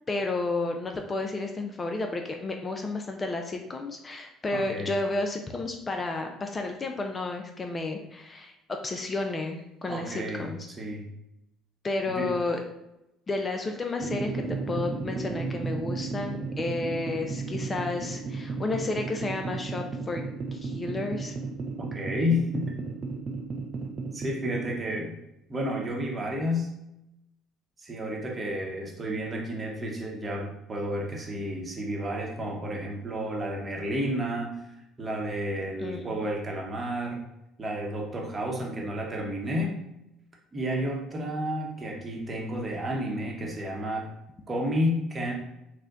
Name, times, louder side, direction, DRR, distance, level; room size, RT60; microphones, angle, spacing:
voice 1, 0.1-10.6 11.8-12.6 13.3-20.2 20.5-21.4 35.8-36.1, left 3 dB, 30° left, 4 dB, 0.4 m, -32 dB
voice 2, 4.5-4.9 9.9-10.5 10.8-11.0 12.1-12.3 21.8-22.8 24.1-25.1 25.5-26.7 27.8-34.5 35.0-37.2 37.6-39.7 40.5-44.1 44.5-45.3, equal, 30° right, 0 dB, 0.8 m, -31 dB
sound 1, 14.0-24.8, right 4 dB, 45° right, 0.4 m, -34 dB
4.3 x 2.2 x 2.5 m, 0.87 s
supercardioid pair, 75°, 0 cm